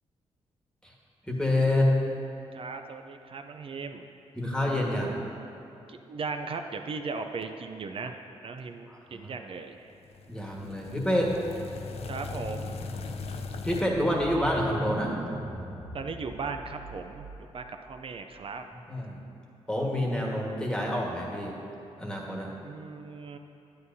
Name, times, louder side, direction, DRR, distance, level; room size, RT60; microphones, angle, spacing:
voice 1, 1.3-1.9 4.3-5.2 8.9-9.3 10.3-11.3 13.6-15.1 18.9-19.2 19.7-21.6 22.0-22.5, left 1 dB, 5° left, -2 dB, 1.5 m, -27 dB
voice 2, 2.5-4.1 5.9-8.2 8.4-9.9 12.1-12.8 15.9-18.6 22.6-23.4, right 4 dB, 50° right, 6 dB, 0.5 m, -37 dB
sound 1, 10.0-13.8, left 4 dB, 60° left, 0.5 m, -38 dB
sound 2, 13.9-17.6, right 1 dB, 10° right, 1.6 m, -38 dB
9.5 x 8.6 x 2.7 m, 2.8 s
cardioid pair, 70°, 11 cm